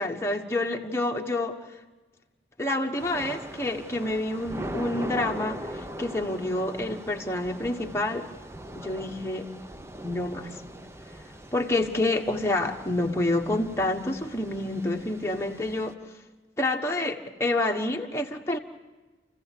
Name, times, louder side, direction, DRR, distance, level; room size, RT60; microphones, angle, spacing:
voice 1, 0.0-1.6 2.6-8.3 8.7-9.5 10.0-10.6 11.5-15.9 16.6-18.6, left 2 dB, 15° left, 1 dB, 1.3 m, -28 dB
Thunder / Rain, 3.0-15.9, right 1 dB, 15° right, 0.7 m, -41 dB
29.0 x 15.5 x 8.4 m, 1.2 s
head